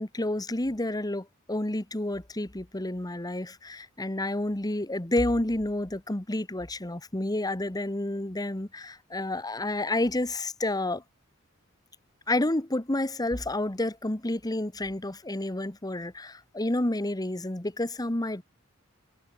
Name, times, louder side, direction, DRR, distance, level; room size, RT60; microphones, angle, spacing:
voice 1, 0.0-11.0 12.3-18.4, left 1 dB, 20° left, 1.3 m, -30 dB
head